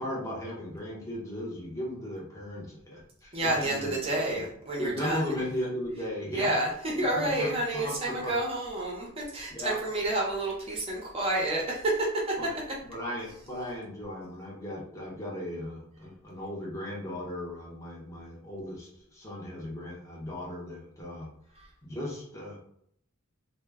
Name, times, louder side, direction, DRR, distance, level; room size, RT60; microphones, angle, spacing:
voice 1, 0.0-3.9 4.3-4.4 4.8-6.5 7.0-8.3 9.5-9.8 12.4-12.5 12.8-21.3 21.8-22.6, left 1 dB, 15° left, -4 dB, 0.7 m, -36 dB
voice 2, 3.3-5.3 6.3-12.3 21.6-21.7, right 1 dB, 25° right, -3 dB, 0.6 m, -29 dB
2.0 x 2.0 x 3.4 m, 0.69 s
head